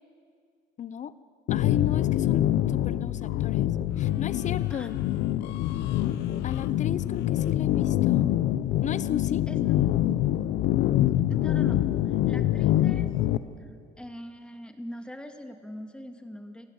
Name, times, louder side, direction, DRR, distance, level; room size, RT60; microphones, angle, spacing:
voice 1, 0.8-1.1 1.5-5.0 6.4-8.3 8.8-9.4, left 8 dB, 45° left, 16 dB, 0.9 m, -35 dB
sound 1, 1.5-13.4, left 13 dB, 85° left, 0.9 m, -25 dB
voice 2, 11.3-13.1 13.6-13.7 14.0-16.7, equal, 5° left, 6 dB, 2.2 m, -41 dB
28.5 x 16.0 x 9.0 m, 2.2 s
cardioid pair, 110°, 17 cm